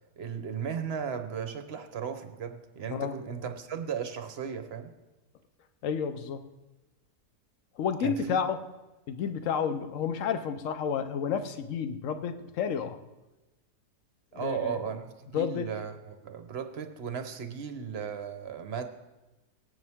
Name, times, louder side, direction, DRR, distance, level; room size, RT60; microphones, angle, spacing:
voice 1, 0.2-4.9 8.0-8.4 14.3-18.8, right 7 dB, 45° right, 7 dB, 0.9 m, -36 dB
voice 2, 5.8-6.4 7.8-8.6 9.1-13.0 14.3-14.9 15.3-15.7, left 7 dB, 60° left, 9 dB, 1.0 m, -31 dB
17.0 x 9.5 x 3.5 m, 1.1 s
omnidirectional pair, 1.8 m